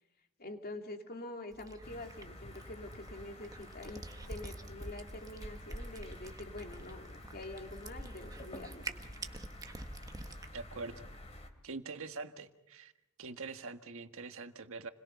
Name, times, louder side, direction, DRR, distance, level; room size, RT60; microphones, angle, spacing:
voice 1, 0.4-8.9, left 2 dB, 45° left, 4 dB, 2.6 m, -46 dB
Cat, 1.5-10.5, right 1 dB, 15° right, 1.4 m, -47 dB
sound 1, 1.8-11.5, left 1 dB, 30° left, 2.7 m, -51 dB
voice 2, 10.5-11.1 11.6-12.9 13.2-14.9, right 4 dB, 65° right, 7 dB, 1.6 m, -44 dB
29.5 x 21.5 x 5.7 m, 0.88 s
head